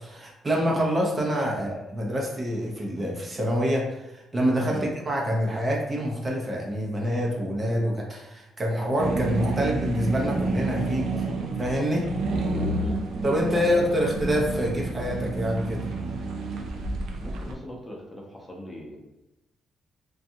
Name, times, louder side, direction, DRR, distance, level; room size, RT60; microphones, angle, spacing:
voice 1, 0.0-11.1 11.6-12.1 13.2-15.9, equal, 30° right, -2 dB, 0.6 m, -26 dB
sound 1, 9.0-17.5, right 2 dB, 70° right, 0.4 m, -29 dB
voice 2, 13.5-13.9 17.2-19.0, equal, 20° left, -2 dB, 0.7 m, -38 dB
2.5 x 2.3 x 2.7 m, 0.98 s
cardioid pair, 90°, 0 cm